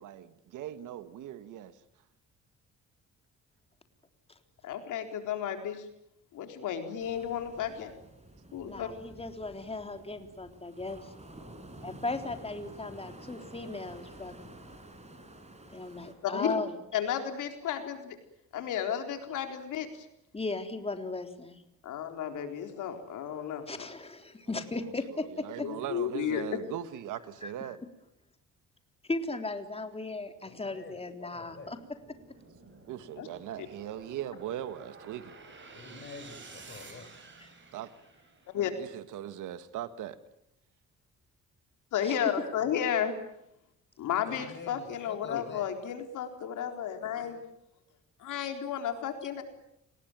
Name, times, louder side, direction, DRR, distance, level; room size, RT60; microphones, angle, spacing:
voice 1, 0.0-1.8 24.4-27.8 32.9-35.3 37.7-37.9 38.8-40.2, right 11 dB, 85° right, 1.9 m, -40 dB
voice 2, 4.6-5.8 6.3-7.9 8.5-8.9 16.2-16.6 16.9-18.2 18.5-20.1 21.8-23.9 25.6-26.6 33.2-33.3 33.6-33.7 38.5-38.7 41.9-43.1 44.0-47.4 48.2-49.4, left 9 dB, 80° left, 4.0 m, -33 dB
sound 1, 7.0-16.2, right 1 dB, 20° right, 5.9 m, -50 dB
voice 3, 8.6-11.1 11.8-14.6 15.7-16.7 20.3-21.6 23.7-25.7 27.4-27.7 29.1-31.8 37.4-37.5 42.0-42.2, left 3 dB, 20° left, 3.6 m, -37 dB
voice 4, 30.4-31.7 35.7-37.1 42.6-42.7 44.3-45.7, left 4 dB, 40° left, 6.6 m, -47 dB
sound 2, 31.5-38.8, right 3 dB, 40° right, 7.9 m, -52 dB
30.0 x 20.5 x 9.1 m
cardioid pair, 90°, 30 cm